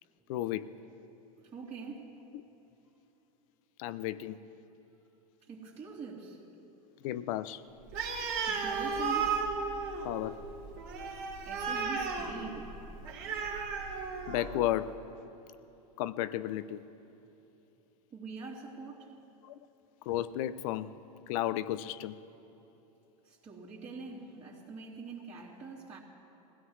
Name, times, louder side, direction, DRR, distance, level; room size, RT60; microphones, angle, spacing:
voice 1, 0.3-0.7 3.8-4.4 7.0-7.6 10.0-10.4 14.3-15.0 16.0-16.8 19.4-19.6 20.1-22.2, left 13 dB, 60° left, 16 dB, 0.6 m, -33 dB
voice 2, 1.5-2.1 5.5-6.4 8.5-9.5 11.4-12.7 18.1-19.1 23.2-26.0, right 4 dB, 35° right, -6 dB, 2.8 m, -44 dB
Animal, 7.9-14.6, right 5 dB, 55° right, 2.5 m, -34 dB
21.5 x 16.5 x 3.2 m, 3.0 s
hypercardioid pair, 100°, 19 cm